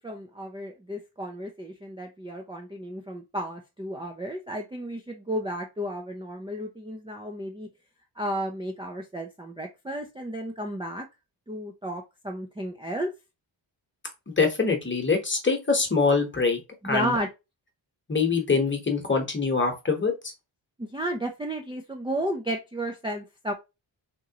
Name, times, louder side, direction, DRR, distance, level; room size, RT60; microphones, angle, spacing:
voice 1, 0.0-7.7 8.2-11.1 11.5-13.1 16.8-17.3 20.8-23.5, equal, 10° right, 0.5 m, -33 dB
voice 2, 14.3-16.6 16.8-17.1 18.1-20.3, left 4 dB, 25° left, 1.1 m, -24 dB
3.7 x 2.9 x 2.8 m
wide cardioid pair, 120°, 46 cm